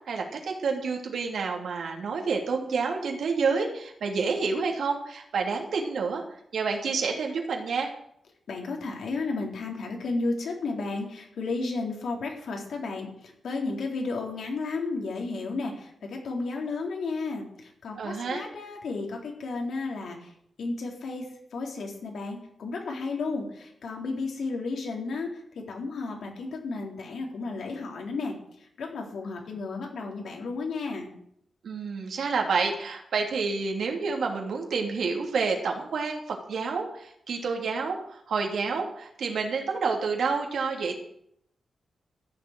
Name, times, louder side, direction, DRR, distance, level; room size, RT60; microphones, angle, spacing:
voice 1, 0.1-6.2 6.5-7.9 18.0-18.4 31.6-41.0, right 4 dB, 65° right, 1 dB, 2.9 m, -29 dB
voice 2, 8.5-20.3 20.6-21.2 21.5-25.4 25.7-28.3 28.8-31.1, left 3 dB, 65° left, 1 dB, 3.8 m, -33 dB
14.5 x 7.4 x 9.0 m, 0.72 s
wide cardioid pair, 180°, 0 cm